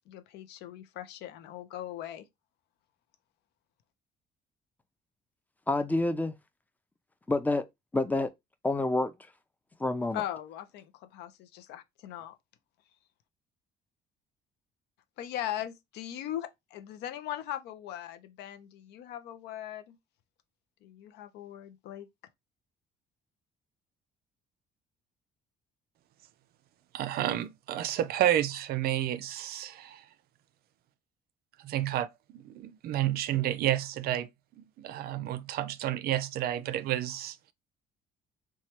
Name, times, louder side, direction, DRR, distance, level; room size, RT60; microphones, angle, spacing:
voice 1, 0.1-2.3 10.1-12.4 15.2-20.0 20.8-22.1, left 12 dB, 80° left, 0.5 m, -39 dB
voice 2, 5.7-6.3 7.3-7.6 7.9-8.3 8.6-9.1 9.8-10.2, left 2 dB, 10° left, 0.4 m, -27 dB
voice 3, 26.9-30.1 31.6-32.1 32.3-34.3 34.6-37.5, right 12 dB, 65° right, 0.4 m, -30 dB
3.1 x 2.2 x 2.9 m
cardioid pair, 110°, 17 cm